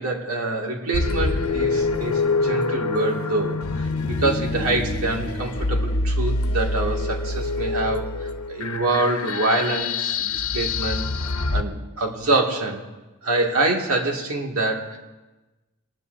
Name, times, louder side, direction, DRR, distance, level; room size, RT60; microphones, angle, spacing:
voice 1, 0.0-11.1 11.5-12.8 13.2-15.0, right 2 dB, 70° right, 0 dB, 2.3 m, -25 dB
sound 1, 0.9-11.6, left 3 dB, 70° left, 0.9 m, -25 dB
23.0 x 19.5 x 2.7 m, 1.1 s
head